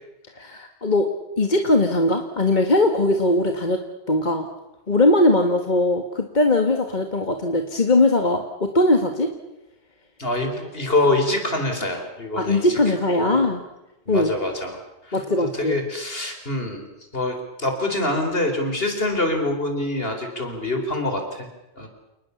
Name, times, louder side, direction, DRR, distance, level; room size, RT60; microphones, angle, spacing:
voice 1, 0.4-1.1 1.4-3.8 4.1-4.5 4.9-9.3 12.4-13.6 14.1-14.3 15.1-15.8, left 2 dB, 45° left, 5 dB, 1.8 m, -20 dB
voice 2, 10.2-13.4 14.1-16.9 17.1-21.5 21.8-21.9, left 2 dB, 65° left, 5 dB, 4.6 m, -25 dB
28.5 x 20.0 x 7.1 m, 0.94 s
omnidirectional pair, 1.1 m